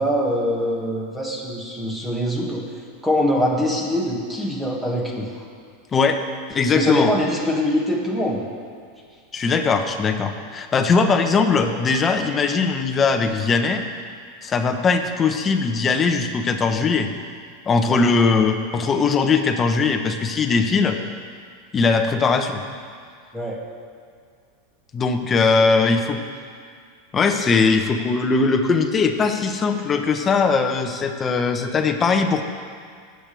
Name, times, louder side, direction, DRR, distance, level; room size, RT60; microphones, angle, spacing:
voice 1, 0.0-2.6 3.0-5.4 6.7-8.4 17.9-18.0 23.3-23.6 25.8-25.9, equal, 5° right, -3 dB, 2.0 m, -23 dB
voice 2, 5.9-6.2 6.5-7.1 9.3-13.8 14.4-17.1 17.7-21.0 21.7-22.6 24.9-26.2 27.1-32.4, left 4 dB, 25° left, 5 dB, 1.0 m, -20 dB
19.5 x 7.9 x 3.5 m, 2.1 s
supercardioid pair, 130°, 0 cm